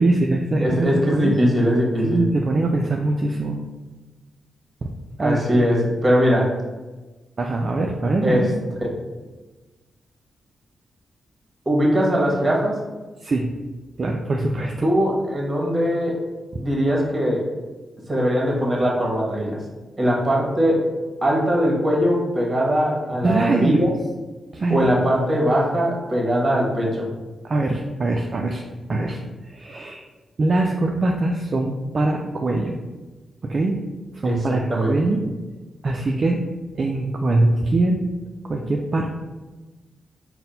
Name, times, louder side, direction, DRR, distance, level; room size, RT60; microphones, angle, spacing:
voice 1, 0.0-1.3 2.0-3.6 5.2-5.4 7.4-8.5 13.2-13.5 14.0-14.9 23.2-23.9 24.5-24.9 27.4-28.6 28.9-30.1 30.4-32.8 33.4-33.8 34.1-35.2 35.8-36.4 36.7-38.0 38.4-39.1, right 2 dB, 50° right, 1 dB, 0.3 m, -22 dB
voice 2, 0.6-2.3 5.2-6.6 8.2-8.5 9.0-9.1 11.6-12.8 14.8-16.2 16.6-17.5 18.1-19.6 20.0-20.9 21.2-23.9 24.7-27.1 34.2-35.2, equal, 30° right, -2 dB, 1.2 m, -21 dB
4.1 x 2.1 x 4.0 m, 1.2 s
supercardioid pair, 50°, 0 cm